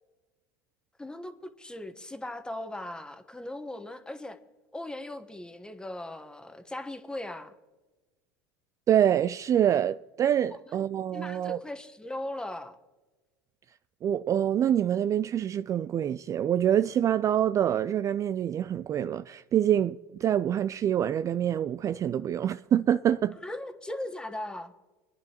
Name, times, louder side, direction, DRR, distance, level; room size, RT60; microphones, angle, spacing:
voice 1, 1.0-4.4 4.7-7.5 11.1-12.8 23.4-24.7, left 1 dB, 10° left, 1.1 m, -38 dB
voice 2, 8.9-11.6 14.0-23.4, right 10 dB, 30° right, 0.3 m, -26 dB
24.0 x 10.5 x 2.9 m
hypercardioid pair, 85°, 10 cm